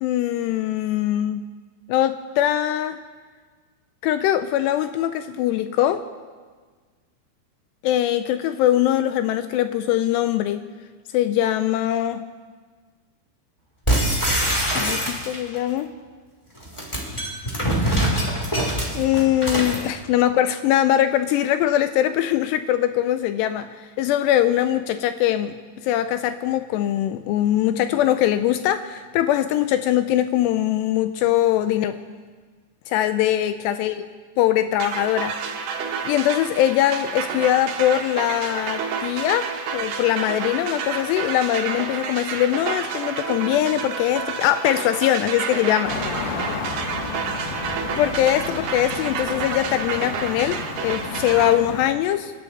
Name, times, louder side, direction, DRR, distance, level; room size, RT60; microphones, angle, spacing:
voice 1, 0.0-1.5 1.9-3.0 4.0-6.0 7.8-10.6 11.1-12.2 14.7-15.9 18.9-25.6 25.8-32.0 32.9-34.0 34.4-35.4 36.0-46.0 48.0-52.3, left 12 dB, 85° left, 10 dB, 2.4 m, -22 dB
sound 1, 13.9-15.6 16.6-19.9, right 1 dB, 10° left, 1.5 m, -23 dB
sound 2, 34.8-51.5, right 6 dB, 70° right, 2.2 m, -30 dB
sound 3, 45.8-51.9, left 4 dB, 70° left, 2.0 m, -32 dB
27.5 x 11.5 x 4.1 m, 1.5 s
omnidirectional pair, 5.4 m